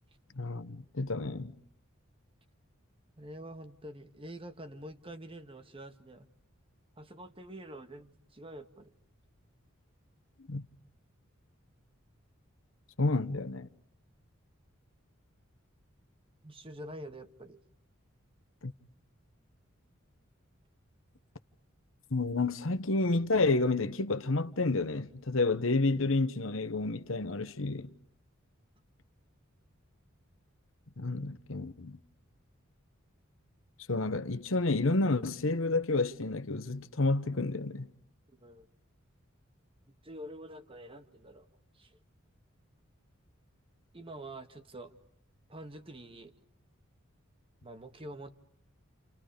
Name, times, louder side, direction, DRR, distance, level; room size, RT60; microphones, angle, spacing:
voice 1, 0.4-1.6 10.5-10.7 13.0-13.7 18.6-18.7 22.1-27.9 31.0-32.0 33.9-37.9, left 3 dB, 75° left, 1.2 m, -30 dB
voice 2, 3.2-6.3 7.0-8.9 16.4-17.6 38.3-38.7 40.0-41.5 41.7-42.0 43.9-44.9 45.5-46.3 47.6-48.3, right 1 dB, 25° right, 1.7 m, -46 dB
30.0 x 30.0 x 5.2 m
head